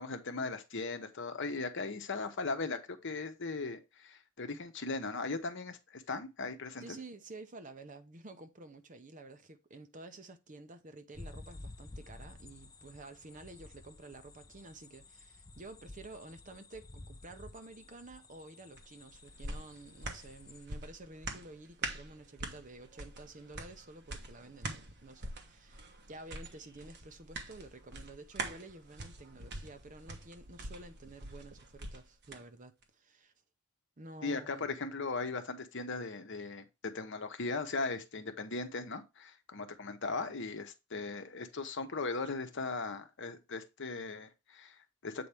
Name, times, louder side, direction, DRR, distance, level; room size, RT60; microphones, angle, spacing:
voice 1, 0.0-7.0 34.2-36.7 36.9-45.3, left 3 dB, 60° left, 0.9 m, -38 dB
voice 2, 6.8-25.8 26.1-33.3 34.0-34.7, right 2 dB, 35° right, 0.7 m, -51 dB
sound 1, 11.1-20.7, left 2 dB, 15° left, 0.5 m, -52 dB
sound 2, 18.8-32.4 32.8-32.9, right 2 dB, 50° right, 1.2 m, -44 dB
7.8 x 4.2 x 3.4 m
head